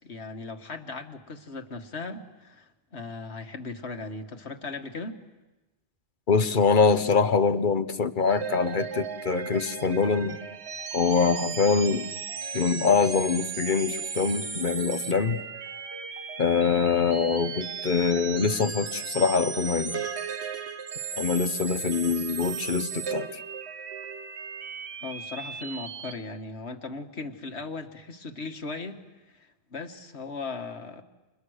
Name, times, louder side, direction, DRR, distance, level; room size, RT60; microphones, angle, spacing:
voice 1, 0.0-5.2 25.0-31.0, left 3 dB, 80° left, 6 dB, 2.0 m, -38 dB
voice 2, 6.3-10.4 10.9-12.1 12.5-15.4 16.4-20.0 21.2-23.4, left 5 dB, 50° left, 12 dB, 1.1 m, -24 dB
sound 1, 8.2-26.1, right 6 dB, 75° right, 1.4 m, -36 dB
29.5 x 28.0 x 6.5 m, 1.1 s
omnidirectional pair, 1.1 m